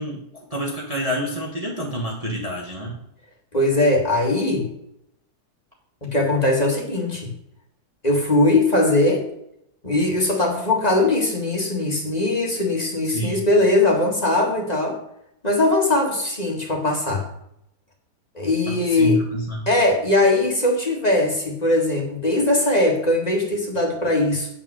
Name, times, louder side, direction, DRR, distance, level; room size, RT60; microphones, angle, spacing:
voice 1, 0.0-2.9 13.0-13.4 18.7-19.7, right 1 dB, 25° right, -2 dB, 1.3 m, -28 dB
voice 2, 3.5-4.7 6.0-7.3 8.0-9.2 9.8-15.0 15.4-17.3 18.4-19.2 19.7-24.5, left 2 dB, 25° left, -1 dB, 1.9 m, -20 dB
9.1 x 5.4 x 6.3 m, 0.78 s
omnidirectional pair, 1.7 m